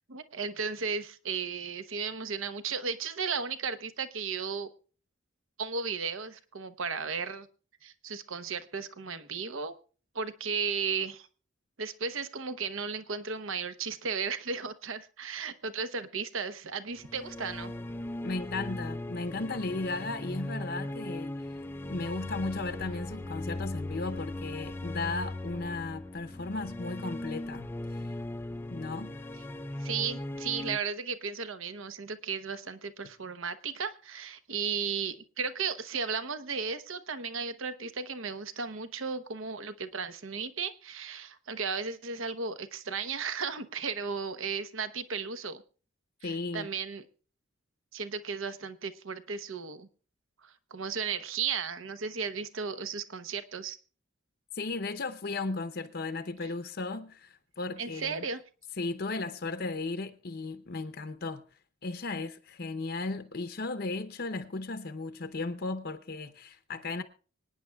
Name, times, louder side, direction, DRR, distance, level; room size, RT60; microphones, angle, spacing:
voice 1, 0.1-4.7 5.6-7.5 7.8-9.8 10.1-11.3 11.8-17.7 29.8-45.6 46.2-47.0 47.9-49.9 50.4-53.8 56.4-56.5 57.8-58.4, right 5 dB, 75° right, 0.9 m, -35 dB
sound 1, 17.0-30.8, left 1 dB, 10° left, 0.4 m, -38 dB
voice 2, 18.2-28.1 28.7-29.2 46.2-46.7 54.5-58.2 58.8-61.4 61.8-67.0, left 3 dB, 50° left, 0.7 m, -35 dB
25.0 x 9.7 x 2.3 m
head